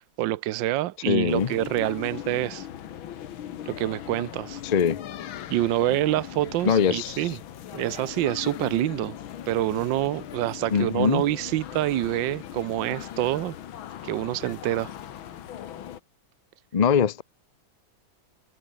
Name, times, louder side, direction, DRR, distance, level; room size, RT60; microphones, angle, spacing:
voice 1, 0.2-2.7 3.7-4.6 5.5-7.4 7.7-9.2 9.5-13.5 14.0-14.9, right 15 dB, 75° right, 1.4 m, -26 dB
voice 2, 1.1-1.5 4.6-5.0 6.6-7.3 10.7-11.2 16.7-17.2, left 7 dB, 60° left, 0.4 m, -22 dB
sound 1, 1.3-16.0, left 10 dB, 90° left, 2.0 m, -39 dB
omnidirectional pair, 2.1 m